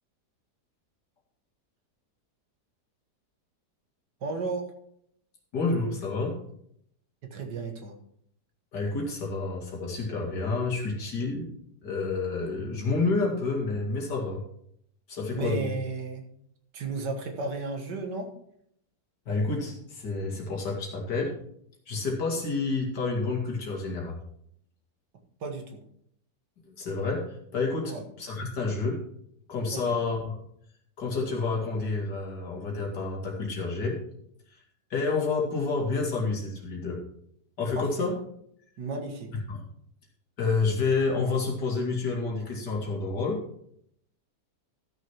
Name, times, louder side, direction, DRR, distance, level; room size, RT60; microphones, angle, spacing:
voice 1, 4.2-4.7 7.2-8.0 15.3-16.2 16.7-18.3 25.4-25.8 27.9-28.0 29.7-29.8 37.8-38.1 38.8-39.3, right 3 dB, 90° right, 4 dB, 2.1 m, -33 dB
voice 2, 5.5-6.4 8.7-11.5 11.8-14.4 15.1-15.7 19.3-21.3 21.9-24.2 26.8-29.0 29.5-30.4 31.0-34.0 34.9-37.0 37.6-38.1 39.5-39.6 40.4-43.4, left 3 dB, 85° left, -2 dB, 2.8 m, -29 dB
13.5 x 6.5 x 4.6 m, 0.70 s
omnidirectional pair, 1.8 m